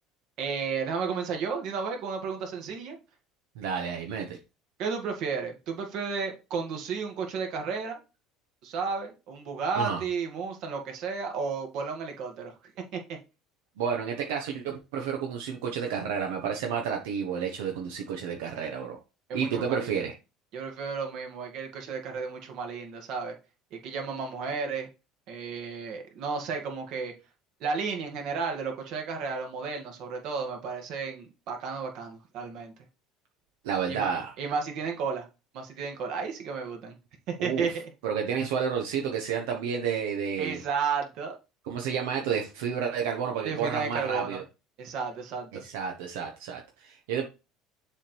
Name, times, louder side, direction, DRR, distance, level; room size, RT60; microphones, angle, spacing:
voice 1, 0.4-3.0 4.8-8.0 8.6-13.2 19.3-19.9 20.5-23.3 23.7-24.9 25.3-27.1 27.6-32.7 33.9-34.1 34.4-35.3 35.5-37.0 37.3-37.9 40.4-41.4 43.4-44.4 44.8-45.6, right 5 dB, 60° right, 2.1 m, -33 dB
voice 2, 3.6-4.4 9.8-10.0 13.8-19.0 19.3-20.1 33.6-34.3 37.4-37.7 38.0-40.6 41.6-44.4 45.6-47.2, right 7 dB, 90° right, 1.1 m, -30 dB
7.2 x 3.6 x 4.6 m
cardioid pair, 120°, 0 cm